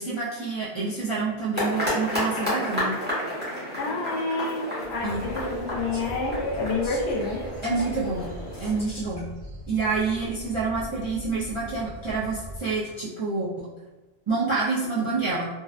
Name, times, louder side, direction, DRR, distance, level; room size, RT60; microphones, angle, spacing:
voice 1, 0.0-2.9 5.0-5.2 7.6-8.3 8.6-9.3 9.7-13.7 14.3-15.5, right 4 dB, 50° right, -11 dB, 0.3 m, -27 dB
sound 1, 1.6-8.8, left 1 dB, 10° right, 0.7 m, -31 dB
voice 2, 3.8-4.6 4.9-7.4, left 3 dB, 75° left, 0 dB, 0.8 m, -29 dB
sound 2, 4.8-12.6, equal, 80° right, 0.9 m, -41 dB
sound 3, 5.9-6.2 6.5-7.2 7.6-7.9 8.5-9.2 10.2-10.3 12.8-13.0, left 1 dB, 30° left, 0.6 m, -44 dB
2.6 x 2.1 x 2.4 m, 1.1 s
omnidirectional pair, 1.1 m